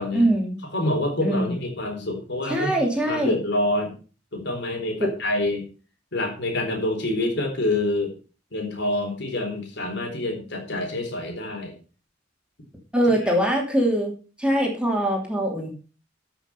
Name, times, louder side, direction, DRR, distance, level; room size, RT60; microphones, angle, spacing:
voice 1, 0.1-0.6 1.2-1.5 2.5-3.4 5.0-5.1 12.9-14.1 14.4-15.7, right 1 dB, 5° right, 0 dB, 2.7 m, -22 dB
voice 2, 0.7-2.8 3.1-3.9 4.3-5.7 6.1-8.2 8.5-11.7 13.2-13.3, left 1 dB, 65° left, 3 dB, 3.9 m, -27 dB
12.5 x 6.2 x 5.6 m, 0.36 s
head